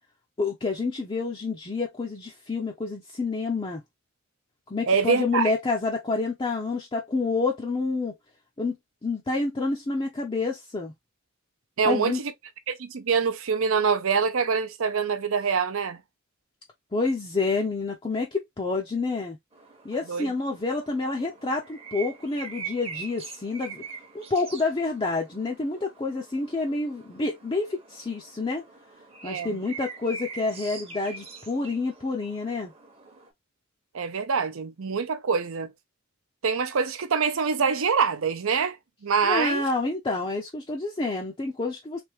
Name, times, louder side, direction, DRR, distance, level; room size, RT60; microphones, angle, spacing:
voice 1, 0.4-3.8 4.7-8.1 8.6-8.8 9.0-10.9 11.8-12.2 16.9-19.4 19.8-23.8 24.1-28.6 29.2-32.7 39.2-42.0, left 3 dB, 25° left, 0.5 m, -28 dB
voice 2, 4.9-5.5 11.8-12.3 12.7-16.0 20.1-20.3 29.2-29.6 33.9-35.7 36.4-38.8 39.0-39.6, right 5 dB, 70° right, 0.6 m, -25 dB
sound 1, 19.5-33.3, right 5 dB, 30° right, 0.9 m, -43 dB
3.4 x 2.6 x 2.9 m
head